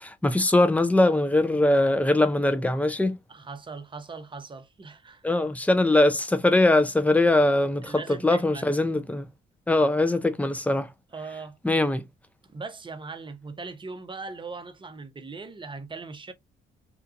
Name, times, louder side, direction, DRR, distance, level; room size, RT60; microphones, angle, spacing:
voice 1, 0.0-3.2 5.2-9.3 9.7-10.9 11.6-12.0, left 2 dB, 5° left, 0.5 m, -22 dB
voice 2, 3.3-5.3 7.8-8.7 11.1-11.9 12.5-16.3, right 4 dB, 25° right, 0.7 m, -40 dB
2.9 x 2.4 x 2.5 m
cardioid pair, 75°, 20 cm